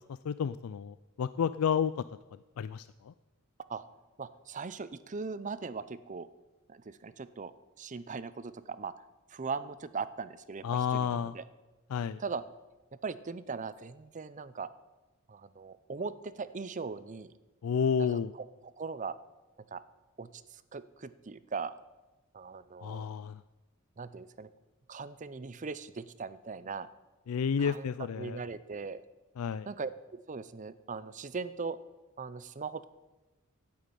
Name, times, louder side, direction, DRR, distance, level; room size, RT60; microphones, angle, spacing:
voice 1, 0.2-1.9 2.6-3.1 10.6-11.3 11.9-12.2 17.6-18.3 22.8-23.4 27.3-28.4 29.4-29.7, left 7 dB, 85° left, 15 dB, 0.4 m, -31 dB
voice 2, 4.2-6.3 6.7-7.5 7.8-8.9 9.3-11.4 12.2-12.4 13.0-14.7 15.3-17.3 18.0-19.2 19.7-19.8 20.2-21.8 22.3-23.0 24.0-24.5 24.9-26.9 27.6-27.9 28.2-29.0 29.7-31.8 32.2-32.8, right 4 dB, 35° right, 15 dB, 0.6 m, -39 dB
11.5 x 8.6 x 9.1 m, 1.1 s
head